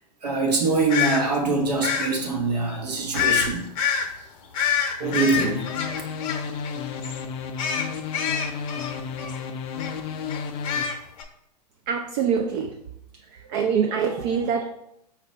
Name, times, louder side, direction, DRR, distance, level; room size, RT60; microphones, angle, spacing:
voice 1, 0.2-3.7 5.0-6.1, right 3 dB, 75° right, 1 dB, 1.0 m, -24 dB
sound 1, 0.9-1.2 1.8-2.1 3.1-3.5 3.8-4.1 4.5-6.8 7.0-7.2 7.6-9.4 9.8-9.9 10.3-11.2, left 7 dB, 50° left, 0.7 m, -26 dB
sound 2, 5.0-10.8, left 6 dB, 25° left, 0.4 m, -32 dB
voice 2, 11.9-12.7 13.3-14.7, right 6 dB, 45° right, 4 dB, 0.4 m, -24 dB
4.3 x 2.5 x 3.2 m, 0.77 s
hypercardioid pair, 110°, 21 cm